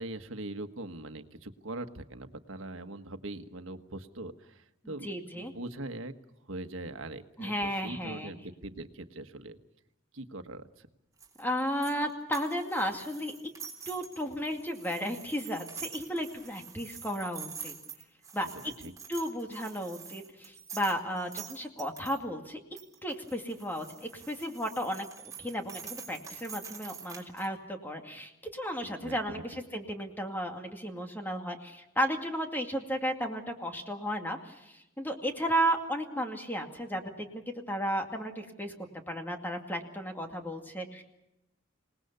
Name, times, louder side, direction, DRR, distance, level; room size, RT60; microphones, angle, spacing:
voice 1, 0.0-6.1 6.5-9.6 10.1-10.9 18.4-18.9 28.8-29.4, right 2 dB, 90° right, 8 dB, 1.4 m, -42 dB
voice 2, 4.8-5.5 7.4-8.3 11.4-13.3 13.9-17.7 18.3-18.5 19.1-22.6 23.0-38.7 39.1-41.0, equal, 10° left, 3 dB, 2.2 m, -34 dB
sound 1, 11.2-22.2 22.8-27.5, right 6 dB, 15° right, 3.6 m, -46 dB
27.0 x 19.0 x 6.9 m, 0.89 s
head